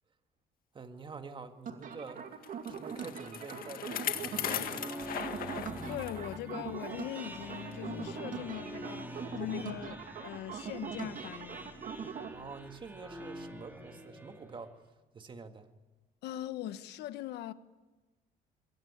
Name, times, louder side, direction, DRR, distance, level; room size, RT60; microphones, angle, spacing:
voice 1, 0.7-2.2 2.7-4.9 12.3-14.9 15.1-15.7, right 4 dB, 30° right, 2.0 m, -47 dB
sound 1, 1.7-12.3, right 7 dB, 50° right, 2.3 m, -42 dB
Bicycle, 2.4-6.4 6.8-6.9 7.7-7.8, left 10 dB, 60° left, 1.9 m, -38 dB
sound 2, 3.9-14.7, equal, 10° right, 4.2 m, -46 dB
voice 2, 5.9-11.7 16.2-17.5, left 12 dB, 80° left, 1.3 m, -41 dB
23.0 x 22.0 x 8.8 m
cardioid pair, 110°, 17 cm